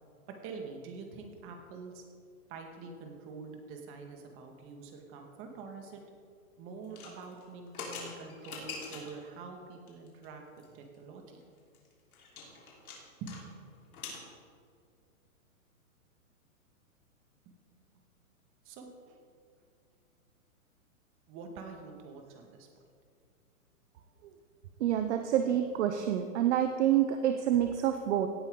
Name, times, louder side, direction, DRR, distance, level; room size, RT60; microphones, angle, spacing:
voice 1, 0.3-2.0 2.5-6.0 6.6-11.4 13.2-13.4 17.5-17.6 18.7-19.2 21.3-22.7, right 4 dB, 30° right, 3 dB, 1.9 m, -46 dB
sound 1, 6.8-9.2 9.9-10.3 10.6-10.7 10.9-11.0 11.4-13.4 13.7-14.2, left 4 dB, 75° left, 3.8 m, -44 dB
voice 2, 24.8-28.3, right 10 dB, 50° right, 7 dB, 0.8 m, -27 dB
17.0 x 9.0 x 3.9 m, 2.1 s
hypercardioid pair, 140°, 44 cm